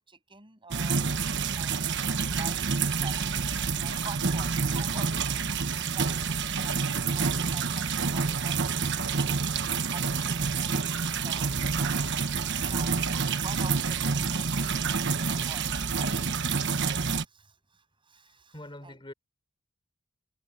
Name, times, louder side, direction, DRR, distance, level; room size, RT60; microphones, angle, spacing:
voice 1, 0.0-2.0 2.3-3.5 3.8-5.5 5.8-9.5 9.9-13.0 13.4-16.5 17.2-19.0, right 4 dB, 25° right, 7.6 m, -47 dB
sound 1, 0.7-17.2, right 5 dB, 55° right, 1.2 m, -28 dB
voice 2, 18.3-19.1, left 1 dB, 20° left, 4.2 m, -45 dB
head